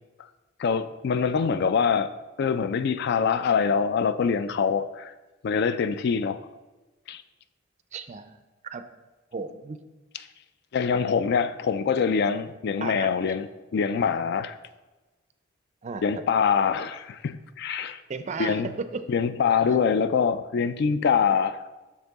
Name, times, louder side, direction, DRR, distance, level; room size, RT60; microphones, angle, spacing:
voice 1, 0.6-2.1 2.4-5.1 5.4-6.4 7.1-7.2 10.7-13.5 13.7-14.6 16.0-18.0 18.4-18.7 19.1-21.6, left 6 dB, 55° left, 13 dB, 0.3 m, -24 dB
voice 2, 7.9-8.4 8.7-8.8 9.3-9.8 12.8-13.1 15.8-16.0 18.1-18.9, right 4 dB, 35° right, 10 dB, 0.4 m, -34 dB
6.5 x 6.1 x 3.5 m, 1.2 s
head